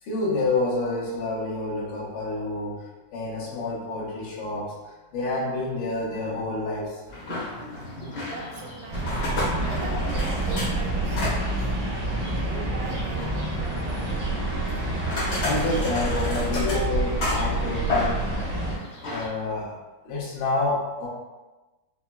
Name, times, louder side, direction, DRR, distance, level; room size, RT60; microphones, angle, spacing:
voice 1, 0.0-2.8 3.1-4.7 5.1-7.0 15.4-18.1 19.0-19.8 20.0-21.1, left 2 dB, 75° left, -7 dB, 2.7 m, -28 dB
sound 1, 7.1-19.3, left 2 dB, 50° left, 1.5 m, -33 dB
voice 2, 8.2-9.2 9.6-11.7 12.3-14.2, right 4 dB, 80° right, -1 dB, 2.0 m, -40 dB
sound 2, 8.9-18.8, right 2 dB, 65° right, 1.1 m, -28 dB
6.1 x 2.8 x 2.3 m, 1.2 s
omnidirectional pair, 3.8 m